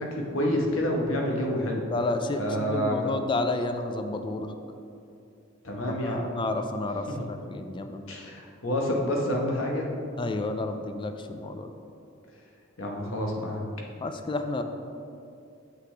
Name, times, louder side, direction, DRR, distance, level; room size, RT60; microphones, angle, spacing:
voice 1, 0.1-1.8 2.4-2.9 5.6-6.3 7.1-7.2 8.1-9.9 12.8-13.6, equal, 80° left, -1 dB, 1.2 m, -28 dB
voice 2, 1.9-4.5 5.9-8.0 10.2-11.7 14.0-14.6, left 2 dB, 25° left, 7 dB, 0.3 m, -31 dB
7.7 x 5.9 x 3.4 m, 2.6 s
head